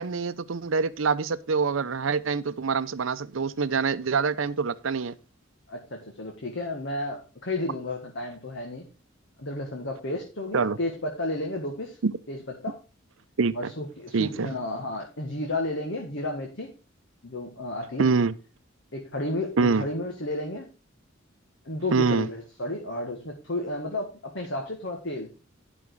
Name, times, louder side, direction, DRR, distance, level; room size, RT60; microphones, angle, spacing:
voice 1, 0.0-5.2 10.5-10.8 12.0-12.1 13.4-13.7 14.1-14.5 18.0-18.3 19.6-19.8 21.9-22.3, right 5 dB, 70° right, 0.6 m, -25 dB
voice 2, 5.7-8.9 9.4-12.0 12.3-12.8 13.5-16.7 17.2-18.1 18.9-20.7 21.6-25.3, left 1 dB, 65° left, 1.7 m, -32 dB
10.5 x 6.1 x 4.6 m
head